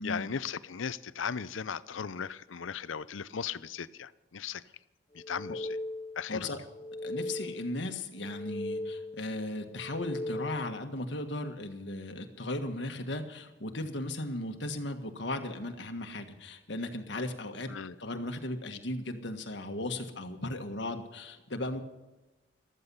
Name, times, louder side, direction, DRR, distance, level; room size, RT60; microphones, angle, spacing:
voice 1, 0.0-4.6 5.1-5.7 6.2-6.4 17.7-17.9, left 6 dB, 80° left, 17 dB, 0.6 m, -37 dB
sound 1, 5.2-6.3 6.7-7.8 8.2-9.3 9.7-10.9, left 1 dB, 25° left, 0.4 m, -38 dB
voice 2, 7.0-17.7 18.0-21.8, left 2 dB, 65° left, 5 dB, 1.6 m, -36 dB
14.5 x 13.5 x 5.6 m, 1.1 s
head